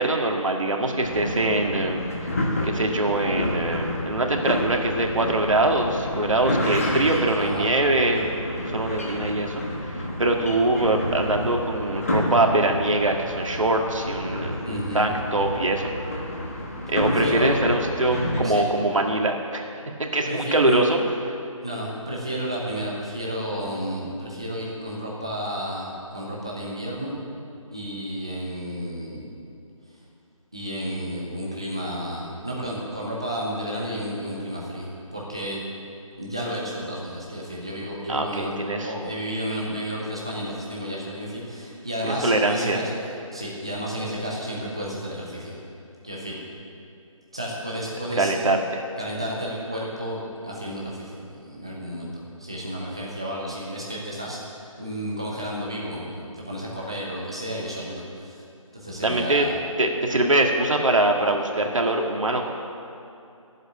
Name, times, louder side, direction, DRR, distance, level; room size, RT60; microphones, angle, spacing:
voice 1, 0.0-2.0 2.6-8.4 8.7-9.6 9.9-15.9 16.9-19.6 20.0-21.0 38.1-38.9 42.0-42.8 48.2-48.8 59.0-59.5 59.8-62.5, right 2 dB, 65° right, 2 dB, 2.0 m, -23 dB
sound 1, 1.0-18.4, left 1 dB, 25° left, 1.3 m, -29 dB
voice 2, 7.4-7.7 14.6-15.0 17.0-17.6 18.4-18.6 20.2-20.8 21.6-27.1 27.7-29.2 30.5-35.7 36.2-38.5 38.8-42.9 43.3-45.5 46.0-46.4 47.3-48.3 49.0-58.4 58.7-59.6, equal, 10° right, -5 dB, 0.7 m, -32 dB
12.5 x 8.0 x 8.5 m, 2.7 s
figure-of-eight pair, 180°, 18 cm